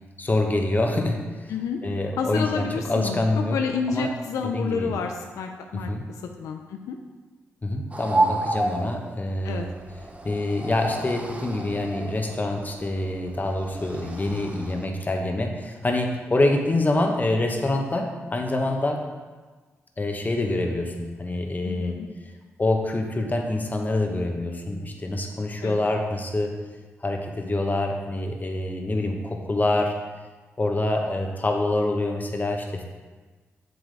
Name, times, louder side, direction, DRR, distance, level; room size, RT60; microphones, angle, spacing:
voice 1, 0.2-1.5 1.8-4.1 4.4-5.0 5.7-6.1 7.6-9.7 10.2-19.1 20.0-22.0 22.6-26.6 27.0-29.9 30.6-32.8, left 2 dB, 30° left, 2 dB, 1.4 m, -26 dB
voice 2, 1.5-1.8 2.2-3.3 3.5-5.9 6.4-7.0 9.4-9.6 21.6-22.1 25.6-25.8, left 6 dB, 80° left, 4 dB, 0.6 m, -29 dB
sound 1, 7.9-14.9, right 2 dB, 25° right, 1.0 m, -31 dB
7.9 x 6.9 x 3.5 m, 1.3 s
supercardioid pair, 50°, 5 cm